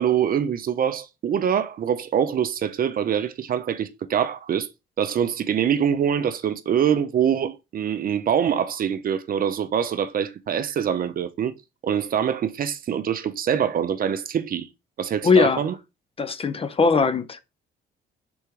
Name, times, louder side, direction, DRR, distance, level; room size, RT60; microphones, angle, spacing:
voice 1, 0.0-4.7 5.0-11.5 11.8-14.7 15.0-15.7, right 8 dB, 45° right, 0.4 m, -24 dB
voice 2, 15.2-15.7 16.2-17.4, left 5 dB, 30° left, 0.4 m, -20 dB
3.5 x 3.2 x 3.1 m
supercardioid pair, 70°, 20 cm